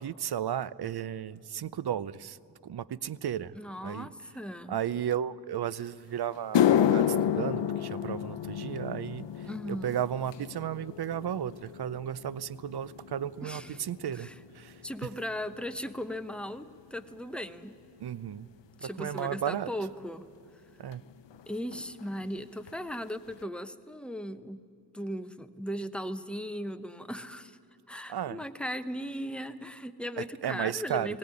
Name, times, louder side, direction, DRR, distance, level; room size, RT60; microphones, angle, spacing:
voice 1, 0.0-2.4 2.6-3.6 3.8-4.1 4.7-14.3 14.5-14.8 18.0-18.5 18.8-19.7 20.8-21.0 28.1-28.4 30.2-31.2, right 9 dB, 65° right, 18 dB, 0.6 m, -34 dB
voice 2, 3.5-4.8 9.4-10.0 13.4-13.8 14.1-14.3 14.8-17.7 18.8-20.3 21.5-24.6 24.9-27.6 27.9-31.2, equal, ahead, 9 dB, 0.9 m, -37 dB
sound 1, 5.8-5.9 6.3-14.9 15.1-15.6 16.3-16.4 19.2-19.3 20.9-21.0 21.2-21.4 21.7-22.2 22.7-22.8 23.3-23.4, left 10 dB, 85° left, 0.6 m, -30 dB
19.0 x 16.5 x 9.7 m, 2.6 s
cardioid pair, 70°, 42 cm